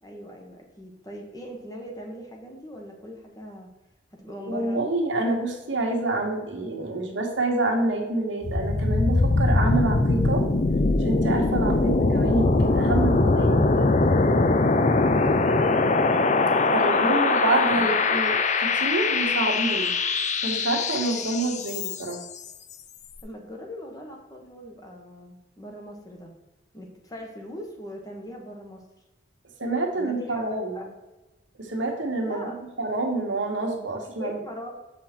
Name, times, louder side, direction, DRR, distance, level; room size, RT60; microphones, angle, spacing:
voice 1, 0.0-3.7 4.2-4.8 11.7-12.0 15.0-15.5 16.8-17.5 23.2-26.3 26.7-28.8 29.9-30.9 32.2-32.5 34.2-34.7, equal, 20° left, 1 dB, 1.3 m, -40 dB
voice 2, 4.5-10.5 11.0-13.9 16.7-19.9 20.4-22.2 29.6-30.8 31.6-34.4, right 2 dB, 80° right, 1 dB, 1.6 m, -27 dB
sound 1, 8.4-22.2, left 3 dB, 40° left, 0.5 m, -22 dB
7.4 x 5.7 x 4.4 m, 1.1 s
head